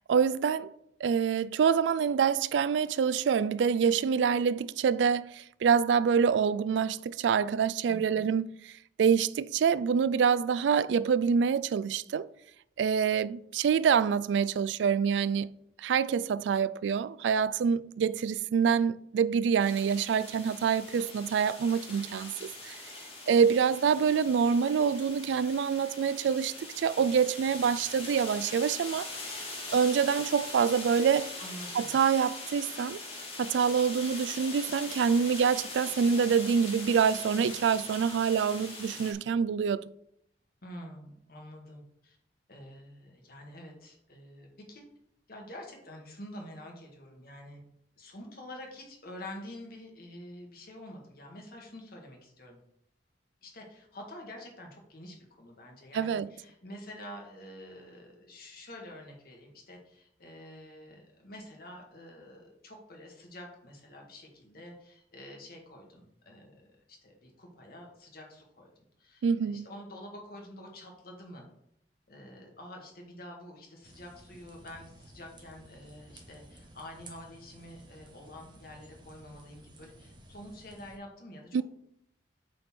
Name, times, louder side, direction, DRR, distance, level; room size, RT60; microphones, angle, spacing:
voice 1, 0.1-0.7 1.0-8.7 9.0-12.3 12.8-15.5 15.8-22.8 23.3-29.1 29.7-31.3 31.7-33.0 33.4-39.9 55.9-56.3 69.2-69.7 81.5-81.6, right 6 dB, 85° right, 0.3 m, -26 dB
voice 2, 7.9-8.2 31.4-32.0 40.6-42.2 42.5-44.8 45.3-47.6 48.0-52.6 53.4-68.7 69.0-71.5 72.1-81.6, left 1 dB, 55° left, 1.8 m, -47 dB
sound 1, 19.6-39.1, left 2 dB, 35° left, 2.1 m, -42 dB
sound 2, 73.8-81.0, right 1 dB, 25° right, 1.3 m, -54 dB
7.7 x 4.2 x 4.4 m
head